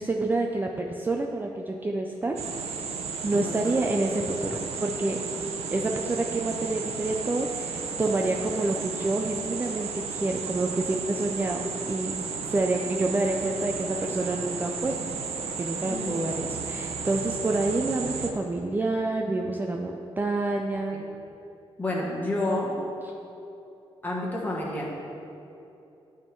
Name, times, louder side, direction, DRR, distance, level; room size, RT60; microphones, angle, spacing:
voice 1, 0.0-2.4 3.2-5.2 5.7-12.1 12.5-15.3 15.6-21.1 23.0-23.1, right 2 dB, 20° right, 1 dB, 0.4 m, -28 dB
sound 1, 2.4-18.3, right 5 dB, 80° right, 0.6 m, -34 dB
voice 2, 3.3-3.8 15.9-16.2 21.8-22.7 24.0-24.9, left 2 dB, 15° left, -4 dB, 1.4 m, -29 dB
10.5 x 3.6 x 4.5 m, 2.9 s
wide cardioid pair, 120°, 10 cm